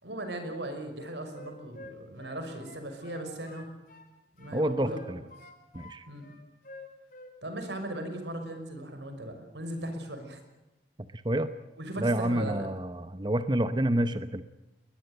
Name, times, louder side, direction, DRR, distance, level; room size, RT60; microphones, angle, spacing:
voice 1, 0.0-3.8 4.3-5.0 6.1-6.3 7.4-10.4 11.8-12.7, right 1 dB, 85° right, 7 dB, 5.9 m, -38 dB
Wind instrument woodwind instrument, 0.9-4.1 4.4-5.9 6.2-7.3 7.6-7.9, left 2 dB, 50° left, 5.6 m, -49 dB
voice 2, 4.5-5.2 5.7-6.0 11.1-11.5 12.0-14.4, right 1 dB, 25° right, 11 dB, 0.9 m, -28 dB
22.0 x 20.5 x 8.1 m, 0.97 s
head